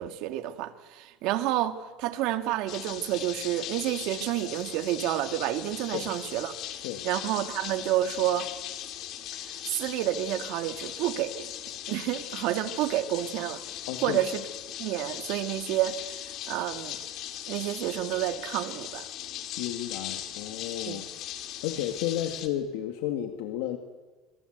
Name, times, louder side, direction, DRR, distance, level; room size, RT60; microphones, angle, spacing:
voice 1, 0.0-6.5 7.0-8.5 9.3-11.5 11.9-13.6 14.0-14.4 14.8-17.0 17.5-19.0 20.9-21.0, right 13 dB, 55° right, 2.0 m, -29 dB
sound 1, 2.7-22.5, left 11 dB, 45° left, 2.5 m, -39 dB
voice 2, 13.9-14.2 19.6-21.1 21.6-23.8, left 11 dB, 70° left, 2.2 m, -32 dB
28.0 x 26.0 x 8.1 m
cardioid pair, 170°, 0 cm